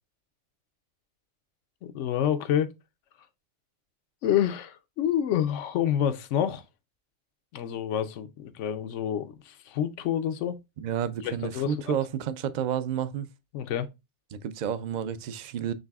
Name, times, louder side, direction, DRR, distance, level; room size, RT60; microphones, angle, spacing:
voice 1, 1.8-2.7 4.2-6.6 7.5-10.6 11.2-11.9 13.5-13.9, left 10 dB, 85° left, 1.0 m, -28 dB
voice 2, 10.8-13.3 14.3-15.7, right 9 dB, 60° right, 0.5 m, -30 dB
6.6 x 3.3 x 2.3 m
omnidirectional pair, 1.2 m